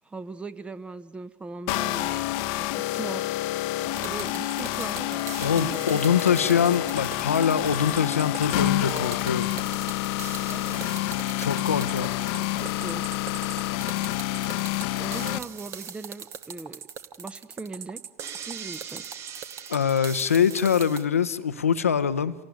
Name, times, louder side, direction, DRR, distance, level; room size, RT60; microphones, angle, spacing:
voice 1, 0.0-2.3 2.6-3.4 3.8-6.0 10.4-11.0 12.4-13.1 14.9-16.8 17.2-18.0 18.4-19.1, right 3 dB, 15° right, 1.1 m, -39 dB
sound 1, 1.7-15.4, left 16 dB, 55° left, 0.9 m, -28 dB
sound 2, 4.0-21.1, right 8 dB, 40° right, 1.4 m, -40 dB
voice 2, 5.4-9.5 11.4-12.1 19.7-22.3, left 7 dB, 80° left, 0.9 m, -23 dB
28.0 x 18.5 x 9.5 m
figure-of-eight pair, 80°, 8 cm